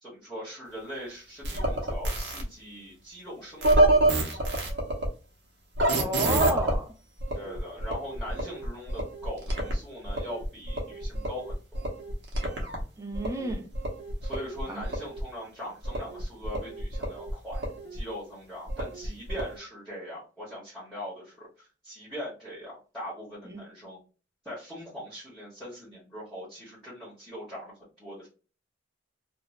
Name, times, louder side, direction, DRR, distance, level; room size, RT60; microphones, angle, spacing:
voice 1, 0.0-4.4 5.8-6.2 7.3-11.8 14.2-24.0 24.4-28.3, equal, ahead, 0.9 m, -41 dB
sound 1, 1.4-2.4 3.6-5.1 5.8-6.8 7.2-9.7 10.1-12.8 13.1-15.2 15.8-18.0 18.7-19.6, right 1 dB, 65° right, 0.8 m, -28 dB
voice 2, 5.9-6.9 13.0-13.7 14.7-14.8 23.5-23.6, right 2 dB, 15° right, 0.5 m, -32 dB
2.5 x 2.1 x 3.0 m
head